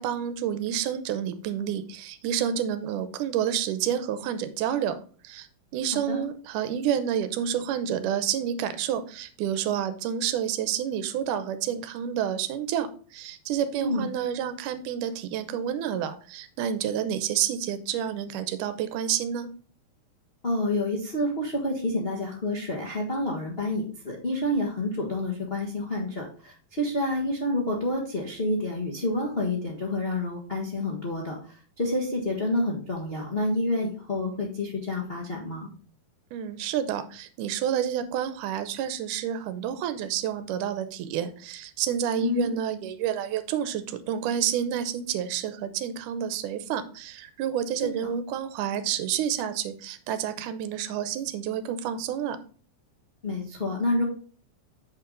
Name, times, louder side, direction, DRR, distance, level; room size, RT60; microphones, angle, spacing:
voice 1, 0.0-5.0 5.2-5.5 5.7-19.5 36.3-52.4, right 9 dB, 75° right, 11 dB, 2.1 m, -29 dB
voice 2, 13.8-14.1 20.4-35.7 42.2-42.5 48.0-48.1 53.2-54.0, left 1 dB, 85° left, -2 dB, 0.5 m, -28 dB
7.7 x 5.8 x 3.8 m, 0.42 s
omnidirectional pair, 4.1 m